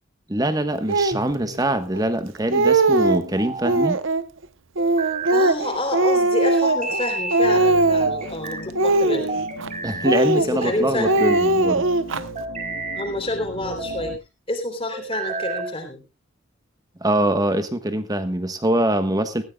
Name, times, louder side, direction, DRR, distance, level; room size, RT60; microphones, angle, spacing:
voice 1, 0.3-4.0 9.8-11.8 17.0-19.4, right 1 dB, 20° right, 1.3 m, -23 dB
Speech, 0.9-1.2 1.9-2.0 2.3-3.2 3.6-4.2 4.8-7.0 7.3-8.3 8.7-9.7 10.0-10.7 11.0-12.2, right 2 dB, 70° right, 0.9 m, -20 dB
sound 1, 1.1-1.8 3.2-3.9 4.8-5.6 6.6-7.4 8.0-8.7 9.3-10.2 10.8-11.4 12.2-13.1 13.6-14.2 14.9-15.8, right 3 dB, 35° right, 2.6 m, -31 dB
voice 2, 5.3-9.4 10.4-11.2 12.4-14.2 14.5-16.0, left 1 dB, 25° left, 3.4 m, -28 dB
sound 2, 7.4-14.2, left 1 dB, 75° left, 1.7 m, -39 dB
19.0 x 14.0 x 2.3 m
head